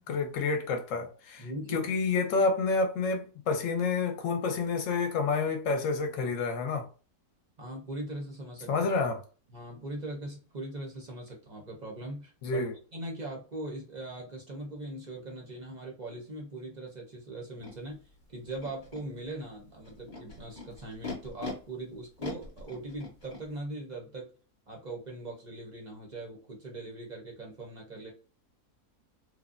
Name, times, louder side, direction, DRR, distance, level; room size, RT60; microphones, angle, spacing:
voice 1, 0.1-1.4 1.7-6.9 8.7-9.2 12.4-12.7, left 4 dB, 65° left, 0.9 m, -29 dB
voice 2, 1.4-1.9 7.6-8.9 9.5-12.6 12.9-18.0 18.3-24.3 24.7-28.1, right 1 dB, 50° right, 0.5 m, -40 dB
Animal, 17.6-17.7 18.5-19.0 19.8-21.5 22.2-23.4, left 4 dB, 35° left, 1.0 m, -41 dB
3.1 x 2.0 x 2.4 m
omnidirectional pair, 1.6 m